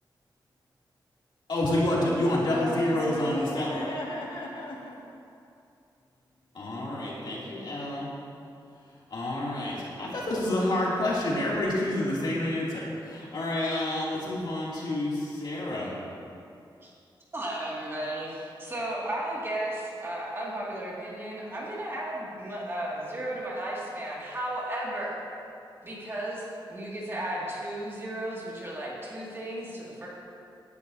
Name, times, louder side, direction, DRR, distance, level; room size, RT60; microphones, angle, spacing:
voice 1, 1.5-3.9 6.5-8.1 9.1-15.9, left 1 dB, 60° left, -6 dB, 2.9 m, -28 dB
voice 2, 2.0-5.0, left 1 dB, 80° left, -4 dB, 2.1 m, -36 dB
voice 3, 17.3-25.2 25.8-30.1, right 1 dB, 30° right, -5 dB, 2.3 m, -34 dB
17.5 x 10.5 x 2.8 m, 2.5 s
wide cardioid pair, 175°, 8 cm